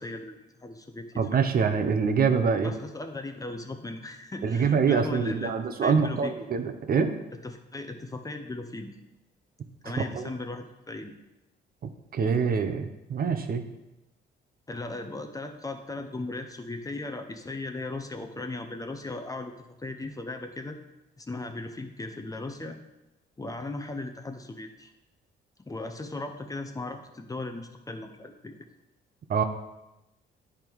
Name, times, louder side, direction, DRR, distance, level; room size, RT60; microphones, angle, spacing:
voice 1, 0.0-1.3 1.6-1.8 2.6-5.5 5.8-6.3 7.4-9.0 9.8-11.1 14.7-20.8 21.2-22.8 23.4-24.9 25.7-28.5, left 2 dB, 15° left, 6 dB, 0.7 m, -37 dB
voice 2, 1.2-2.7 4.4-7.1 10.1-10.3 12.1-13.6 29.3-29.4, right 6 dB, 50° right, 7 dB, 0.7 m, -25 dB
10.0 x 3.5 x 4.6 m, 0.96 s
cardioid pair, 90°, 20 cm